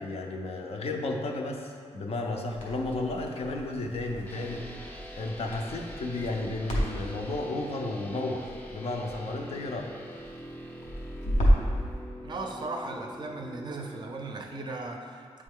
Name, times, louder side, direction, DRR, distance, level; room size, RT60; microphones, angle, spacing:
voice 1, 0.0-9.9, left 2 dB, 60° left, 2 dB, 0.6 m, -33 dB
Crackle, 2.5-11.8, equal, 90° left, 1.2 m, -32 dB
sound 1, 4.3-14.0, equal, 15° left, 0.5 m, -44 dB
voice 2, 12.2-15.4, right 2 dB, 40° right, 3 dB, 0.5 m, -37 dB
8.8 x 3.3 x 3.6 m, 2.2 s
wide cardioid pair, 180°, 12 cm